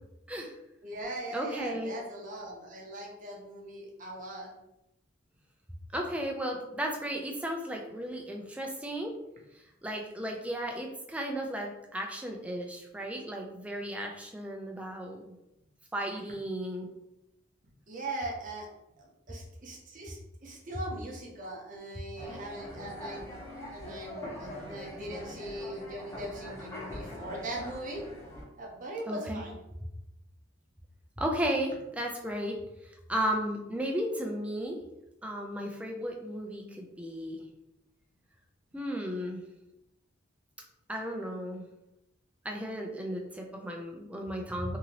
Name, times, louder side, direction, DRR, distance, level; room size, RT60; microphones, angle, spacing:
voice 1, 0.8-4.5 17.9-18.7 19.0-23.4 23.7-28.0 28.6-29.6, right 1 dB, 40° right, -2 dB, 0.6 m, -40 dB
voice 2, 1.3-1.9 5.9-9.1 9.8-15.3 15.9-16.9 29.1-29.4 31.2-32.6 32.8-34.8 35.2-37.4 38.7-39.4 40.9-41.7 42.4-44.8, equal, 5° right, 1 dB, 0.3 m, -34 dB
sound 1, 22.2-28.4, left 1 dB, 15° left, 0.8 m, -43 dB
2.9 x 2.6 x 2.7 m, 0.87 s
head